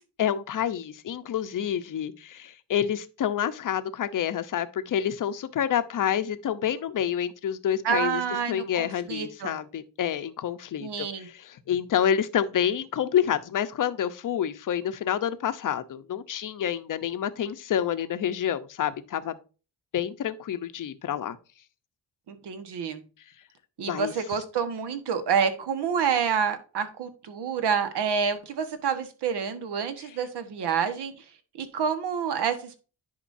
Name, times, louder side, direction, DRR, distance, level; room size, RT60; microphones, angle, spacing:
voice 1, 0.2-8.2 8.5-19.4 19.9-21.4 23.9-24.1, left 9 dB, 45° left, 0.8 m, -28 dB
voice 2, 7.8-9.5 10.8-11.3 22.3-23.0 23.8-31.1 31.6-32.8, right 7 dB, 65° right, 1.4 m, -28 dB
10.0 x 5.1 x 2.6 m
cardioid pair, 130°, 43 cm